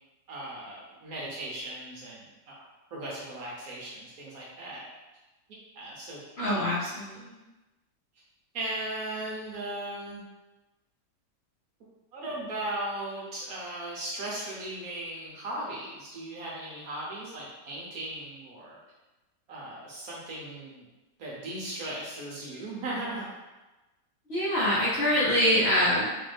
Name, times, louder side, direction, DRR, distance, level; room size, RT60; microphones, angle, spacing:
voice 1, 0.3-2.6 2.9-4.8 5.7-6.2 6.5-6.6 8.5-10.2 12.1-18.8 19.5-20.9 21.2-23.3, right 1 dB, 60° right, -5 dB, 1.1 m, -37 dB
voice 2, 6.4-7.4 24.3-26.1, equal, 50° left, -10 dB, 0.9 m, -25 dB
3.8 x 2.6 x 3.3 m, 1.1 s
omnidirectional pair, 1.9 m